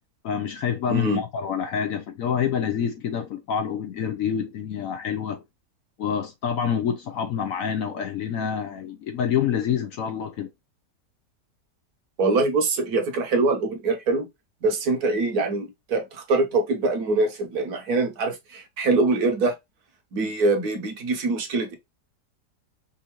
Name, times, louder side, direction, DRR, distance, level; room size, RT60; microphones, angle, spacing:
voice 1, 0.2-5.4 6.0-10.5, left 8 dB, 70° left, 0.8 m, -27 dB
voice 2, 0.9-1.2 12.2-14.3 14.6-19.5 20.1-21.8, right 3 dB, 65° right, 1.4 m, -24 dB
5.5 x 2.6 x 2.9 m
omnidirectional pair, 1.8 m